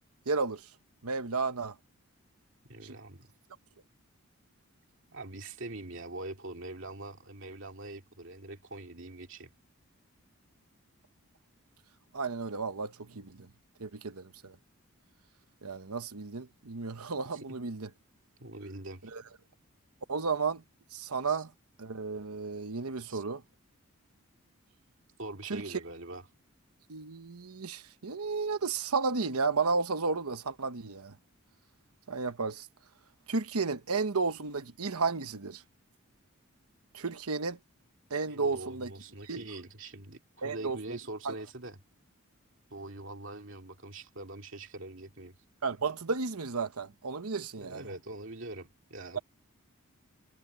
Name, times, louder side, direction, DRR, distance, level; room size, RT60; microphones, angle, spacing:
voice 1, 0.3-0.7 1.0-1.7 12.1-13.5 13.8-14.6 15.6-17.9 19.1-19.2 20.1-20.6 20.9-21.5 21.8-23.4 25.5-25.8 26.9-31.1 32.1-32.7 33.3-35.6 36.9-37.6 38.1-38.9 39.3-39.4 40.4-41.0 41.2-41.3 45.6-47.8, right 4 dB, 85° right, 1.1 m, -33 dB
voice 2, 2.7-3.3 5.1-9.5 17.3-17.6 18.4-19.1 21.3-21.4 23.1-23.2 25.2-26.2 38.3-41.8 42.7-45.3 47.6-49.2, right 2 dB, 55° right, 2.7 m, -43 dB
head